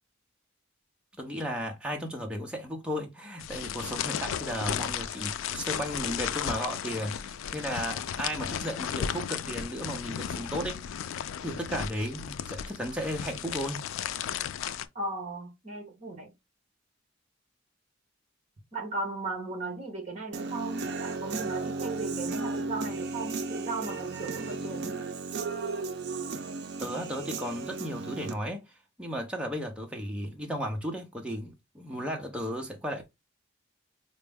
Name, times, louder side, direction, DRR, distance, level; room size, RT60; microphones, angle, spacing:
voice 1, 1.2-11.1 11.4-13.8 26.8-28.6 29.0-33.1, equal, 5° right, 0.6 m, -35 dB
sound 1, 3.4-14.9, left 9 dB, 80° left, 0.3 m, -35 dB
voice 2, 14.9-16.3 18.7-25.0, right 3 dB, 35° right, 0.9 m, -36 dB
Human voice / Guitar, 20.3-28.3, right 3 dB, 55° right, 0.4 m, -35 dB
4.3 x 2.0 x 3.4 m
head